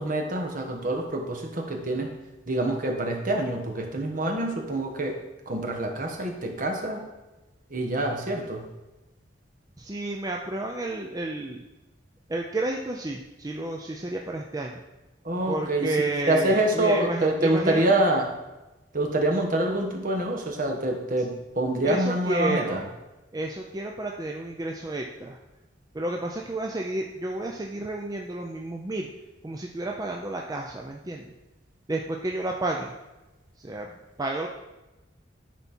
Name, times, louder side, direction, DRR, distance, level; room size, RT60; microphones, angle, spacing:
voice 1, 0.0-2.1 2.5-5.2 5.5-7.0 7.7-8.7 15.2-18.3 18.9-22.8, right 1 dB, 45° right, 2 dB, 1.2 m, -26 dB
voice 2, 9.8-11.6 12.3-14.8 15.5-17.8 21.8-22.9 23.3-25.4 25.9-29.1 29.4-31.3 31.9-32.9 33.6-33.9 34.2-34.5, right 2 dB, 20° right, 1 dB, 0.5 m, -31 dB
10.5 x 4.3 x 4.3 m, 1.1 s
head